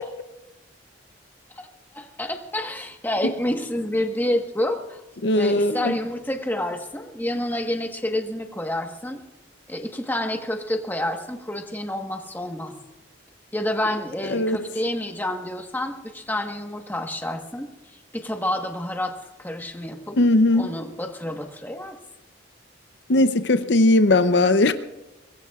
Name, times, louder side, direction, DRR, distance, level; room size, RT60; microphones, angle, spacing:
voice 1, 1.9-5.0 5.3-9.2 9.7-12.7 13.5-17.7 18.1-19.1 19.4-20.2 20.5-22.0, left 1 dB, 10° left, 4 dB, 1.3 m, -28 dB
voice 2, 5.2-5.9 14.3-14.6 20.2-20.7 23.1-24.7, left 2 dB, 65° left, 10 dB, 0.7 m, -18 dB
24.0 x 20.5 x 2.4 m, 1.0 s
head